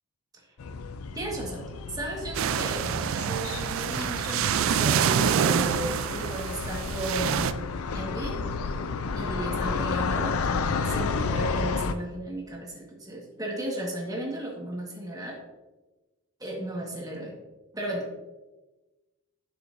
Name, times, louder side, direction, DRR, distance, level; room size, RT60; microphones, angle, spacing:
sound 1, 0.6-11.9, left 4 dB, 90° left, 0.5 m, -32 dB
voice 1, 1.1-8.4 9.1-15.4 16.4-17.4 17.7-18.1, right 1 dB, 15° right, -2 dB, 1.5 m, -35 dB
sound 2, 2.3-7.5, right 8 dB, 65° right, 0.3 m, -26 dB
11.0 x 5.7 x 2.6 m, 1.1 s
head